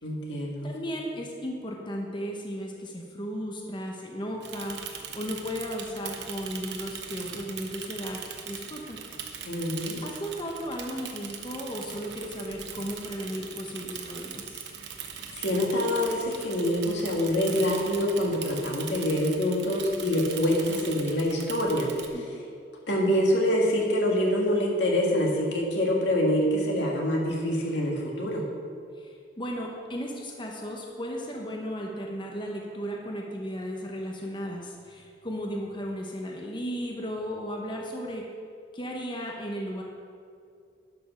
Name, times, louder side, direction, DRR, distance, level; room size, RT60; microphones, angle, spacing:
voice 1, 0.0-0.7 9.5-10.0 15.4-21.9 22.9-28.5, left 1 dB, 90° left, -2 dB, 2.0 m, -25 dB
voice 2, 0.6-8.2 8.5-9.0 9.4-9.5 10.0-14.6 22.1-22.4 29.0-38.3 38.7-39.8, equal, 25° left, 0 dB, 0.9 m, -35 dB
Bicycle / Mechanisms, 4.4-22.1, right 7 dB, 75° right, 0.9 m, -40 dB
11.5 x 5.4 x 5.7 m, 2.3 s
head